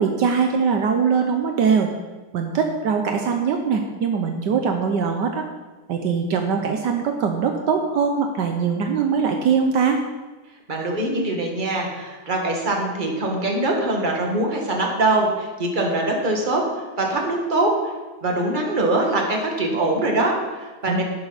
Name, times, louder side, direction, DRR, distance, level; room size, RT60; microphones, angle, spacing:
voice 1, 0.0-1.9 2.3-5.5 5.9-10.0 20.9-21.0, right 6 dB, 70° right, 4 dB, 1.4 m, -21 dB
voice 2, 10.7-16.6 17.0-17.8 18.2-21.0, right 2 dB, 25° right, 0 dB, 1.8 m, -23 dB
11.5 x 11.0 x 4.0 m, 1.2 s
omnidirectional pair, 2.0 m